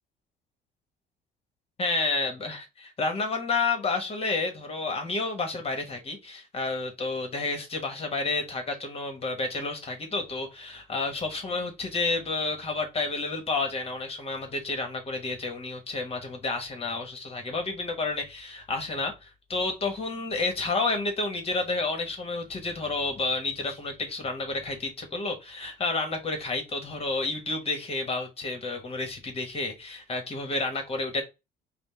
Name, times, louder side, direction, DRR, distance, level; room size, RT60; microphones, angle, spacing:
voice 1, 1.8-31.2, left 3 dB, 35° left, 1.2 m, -30 dB
5.0 x 2.1 x 3.5 m
cardioid pair, 110°, 17 cm